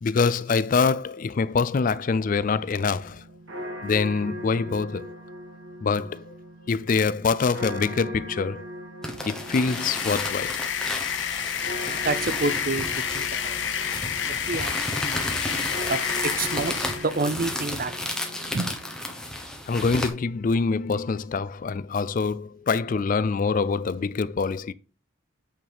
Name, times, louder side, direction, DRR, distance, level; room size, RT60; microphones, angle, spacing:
voice 1, 0.0-3.3 3.8-5.2 5.8-6.4 6.7-8.7 9.2-10.6 19.7-24.7, left 5 dB, 40° left, 0.3 m, -25 dB
sound 1, 2.3-18.9, equal, 65° right, 2.4 m, -40 dB
sound 2, 9.0-20.1, left 1 dB, 5° left, 1.2 m, -33 dB
sound 3, 9.4-17.2, left 8 dB, 60° left, 0.9 m, -30 dB
voice 2, 12.0-13.6 14.3-15.4 15.9-17.9 18.5-18.7, right 3 dB, 45° right, 0.6 m, -29 dB
8.6 x 5.7 x 3.5 m
head